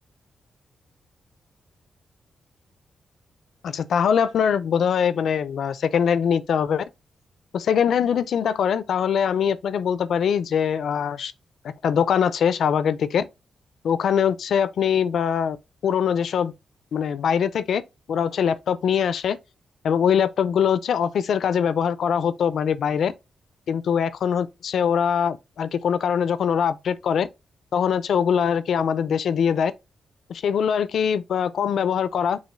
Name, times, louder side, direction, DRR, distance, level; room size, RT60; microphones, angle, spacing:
voice 1, 3.6-6.8 7.5-11.3 11.6-13.2 13.8-15.6 15.8-16.5 16.9-17.8 18.1-19.4 19.8-23.1 23.7-27.3 27.7-29.7 30.3-32.4, left 7 dB, 70° left, 0.4 m, -22 dB
5.5 x 2.8 x 3.1 m
wide cardioid pair, 155°, 0 cm